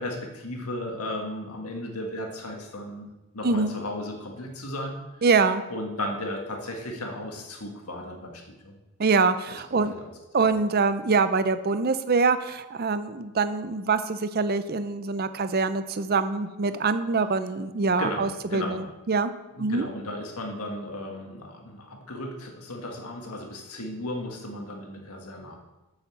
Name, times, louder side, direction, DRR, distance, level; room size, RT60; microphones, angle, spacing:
voice 1, 0.0-3.1 3.3-5.0 5.4-8.7 9.5-10.1 10.4-10.5 18.0-18.8 19.5-25.6, left 1 dB, 80° left, 2 dB, 1.7 m, -35 dB
voice 2, 5.2-5.6 9.0-9.9 10.3-19.3 19.6-19.9, right 4 dB, 45° right, 12 dB, 0.5 m, -24 dB
7.1 x 6.5 x 7.1 m, 1.1 s
head